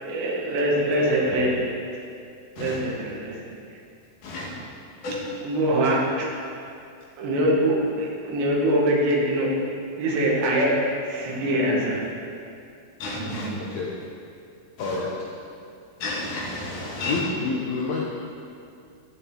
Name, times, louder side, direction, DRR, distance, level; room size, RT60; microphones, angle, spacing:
voice 1, 0.0-1.6 2.6-3.5 5.4-6.3 7.2-9.5 10.0-10.8 11.1-12.0 13.2-13.6, right 1 dB, 85° right, -3 dB, 3.9 m, -23 dB
voice 2, 13.0-13.5 14.8-15.0 16.0-17.2, left 2 dB, 60° left, -4 dB, 2.6 m, -32 dB
voice 3, 14.8-15.1 17.1-18.0, left 4 dB, 85° left, -3 dB, 1.6 m, -28 dB
18.5 x 7.0 x 3.8 m, 2.5 s
omnidirectional pair, 4.9 m